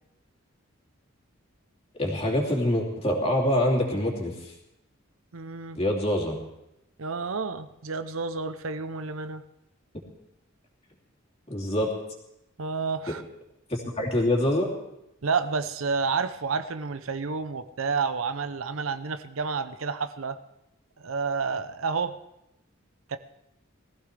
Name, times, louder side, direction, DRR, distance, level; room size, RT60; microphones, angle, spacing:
voice 1, 2.0-4.5 5.7-6.4 11.5-11.9 13.1-13.2 13.7-14.7, left 1 dB, 30° left, -2 dB, 3.1 m, -25 dB
voice 2, 5.3-5.8 7.0-9.4 12.6-13.2 15.2-20.4 21.0-22.2 23.1-23.2, right 5 dB, 80° right, 10 dB, 0.7 m, -30 dB
21.0 x 15.0 x 3.4 m, 0.85 s
head